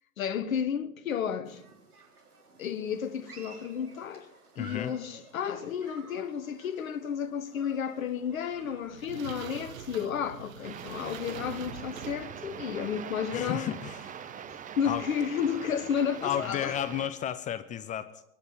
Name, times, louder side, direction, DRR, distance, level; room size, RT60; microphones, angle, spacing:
voice 1, 0.2-1.6 2.6-4.3 4.6-13.7 14.8-16.7, left 8 dB, 65° left, 1.3 m, -32 dB
Human group actions, 1.4-9.1, right 4 dB, 85° right, 3.9 m, -54 dB
voice 2, 4.6-5.0 13.3-14.2 14.8-15.1 16.2-18.2, left 10 dB, 15° left, 0.6 m, -33 dB
sound 1, 8.5-13.4, right 9 dB, 65° right, 1.3 m, -45 dB
sound 2, 10.6-17.1, right 8 dB, 15° right, 1.1 m, -43 dB
23.5 x 10.5 x 5.8 m
figure-of-eight pair, 100°, 44 cm